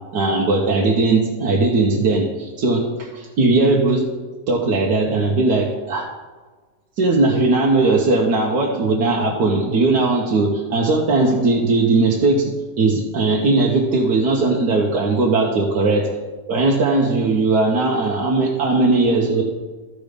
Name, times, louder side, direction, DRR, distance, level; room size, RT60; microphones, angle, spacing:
voice 1, 0.1-4.1 4.5-6.1 7.0-16.1 16.5-19.4, right 3 dB, 85° right, -2 dB, 1.6 m, -18 dB
14.0 x 5.1 x 5.1 m, 1.3 s
omnidirectional pair, 1.7 m